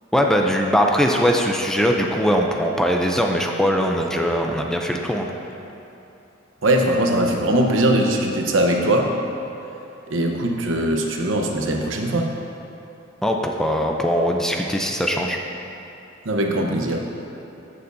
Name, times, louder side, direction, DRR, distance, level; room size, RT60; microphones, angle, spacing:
voice 1, 0.1-5.3 13.2-15.4, equal, 5° left, 1 dB, 0.4 m, -21 dB
voice 2, 6.6-9.1 10.1-12.3 16.2-17.0, right 1 dB, 75° right, 1 dB, 0.9 m, -20 dB
13.5 x 6.9 x 2.7 m, 2.8 s
head